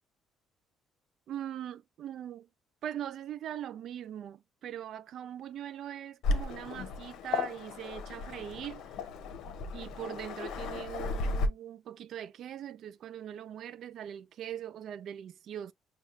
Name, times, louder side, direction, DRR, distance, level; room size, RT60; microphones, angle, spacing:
voice 1, 1.3-2.5 2.8-8.9 9.7-15.7, right 10 dB, 60° right, 0.3 m, -41 dB
Waves surf, 6.2-11.5, left 3 dB, 75° left, 0.7 m, -35 dB
5.6 x 2.2 x 2.5 m
cardioid pair, 135°, 0 cm